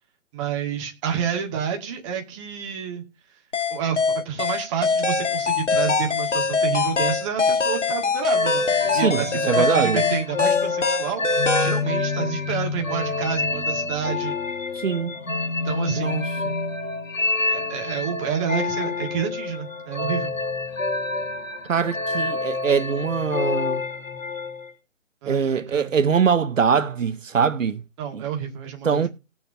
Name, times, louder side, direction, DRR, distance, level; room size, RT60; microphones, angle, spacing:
voice 1, 0.3-3.0 3.7-8.6 8.9-14.4 15.6-16.2 17.5-20.3 25.2-25.9 28.0-29.1, right 8 dB, 25° right, 2.0 m, -29 dB
sound 1, 3.5-11.8, left 4 dB, 65° left, 1.6 m, -23 dB
sound 2, 8.3-24.7, left 3 dB, 85° left, 1.9 m, -28 dB
voice 2, 8.9-10.0 14.8-15.1 16.0-16.5 21.6-23.8 25.3-27.8 28.1-28.2 28.8-29.1, right 6 dB, 80° right, 0.7 m, -23 dB
19.0 x 7.0 x 2.6 m
figure-of-eight pair, 145°, 38 cm